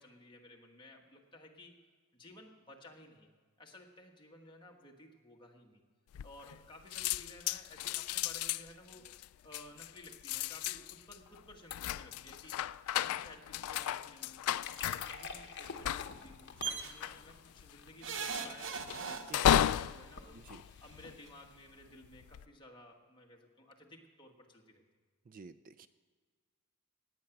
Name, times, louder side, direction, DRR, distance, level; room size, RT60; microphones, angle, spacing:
voice 1, 0.0-1.8 2.1-3.3 3.6-5.8 6.2-9.1 9.4-12.6 12.9-14.5 14.8-20.4 20.8-24.8, left 1 dB, 20° left, 1 dB, 1.5 m, -55 dB
sound 1, 6.1-6.7 6.9-21.5 22.0-22.4, left 11 dB, 80° left, 0.3 m, -35 dB
sound 2, 14.3-21.7, left 5 dB, 55° left, 1.0 m, -50 dB
sound 3, 16.6-16.9 18.0-19.7 20.9-21.0 21.3-21.4, right 6 dB, 60° right, 0.9 m, -39 dB
voice 2, 25.3-25.9, right 4 dB, 40° right, 14 dB, 0.3 m, -52 dB
18.0 x 8.9 x 5.9 m, 1.6 s
head